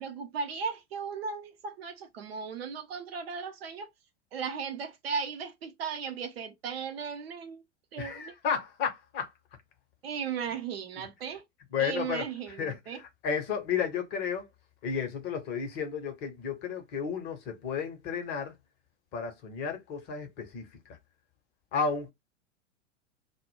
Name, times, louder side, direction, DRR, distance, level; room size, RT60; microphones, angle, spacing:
voice 1, 0.0-3.9 4.3-7.6 7.9-8.3 10.0-11.4 11.8-13.0, right 6 dB, 55° right, 0.6 m, -36 dB
voice 2, 8.0-9.3 11.7-12.2 12.6-14.4 14.8-18.5 19.1-21.0 21.7-22.1, left 6 dB, 30° left, 0.7 m, -33 dB
2.1 x 2.0 x 3.0 m
figure-of-eight pair, 90°, 36 cm